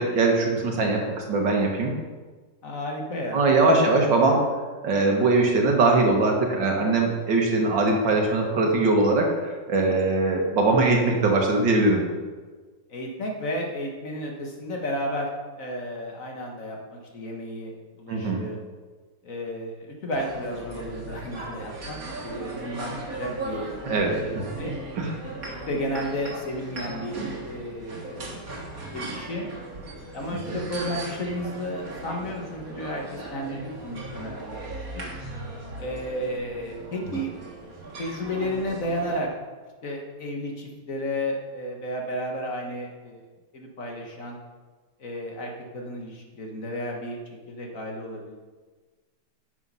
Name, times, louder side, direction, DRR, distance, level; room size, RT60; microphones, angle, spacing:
voice 1, 0.0-1.9 3.3-4.4 4.8-12.0 18.1-18.4 23.9-24.1 25.0-25.1, right 3 dB, 90° right, 1 dB, 2.2 m, -21 dB
voice 2, 2.6-4.1 12.9-15.3 15.6-18.6 19.2-24.7 25.3-28.5 28.9-29.5 30.1-34.6 34.9-35.0 35.8-37.3 38.0-39.3 39.8-43.2 43.5-44.4 45.0-47.2 47.5-48.4, equal, 50° left, 0 dB, 1.7 m, -33 dB
sound 1, 20.1-39.2, right 2 dB, 50° right, 1.9 m, -37 dB
9.2 x 6.4 x 5.5 m, 1.4 s
omnidirectional pair, 1.9 m